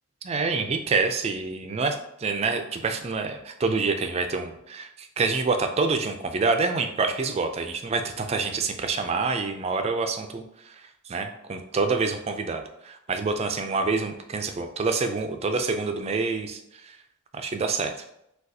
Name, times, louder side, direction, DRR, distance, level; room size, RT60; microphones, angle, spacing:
voice 1, 0.2-10.8 11.1-17.0 17.3-17.9, right 4 dB, 30° right, 6 dB, 0.3 m, -27 dB
6.3 x 2.3 x 2.7 m, 0.79 s
head